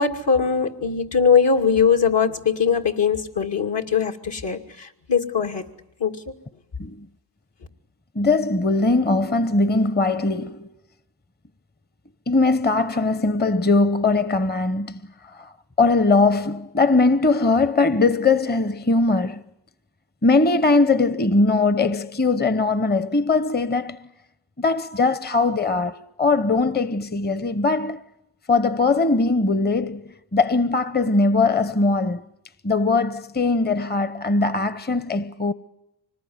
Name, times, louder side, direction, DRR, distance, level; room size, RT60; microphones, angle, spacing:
voice 1, 0.0-5.7 6.0-6.2, left 6 dB, 70° left, 2.6 m, -21 dB
voice 2, 8.1-10.7 12.3-15.5 15.8-19.4 20.2-24.1 24.6-28.0 28.5-32.3 32.6-35.5, left 3 dB, 20° left, 0.9 m, -20 dB
25.5 x 20.0 x 9.6 m
cardioid pair, 55°, 44 cm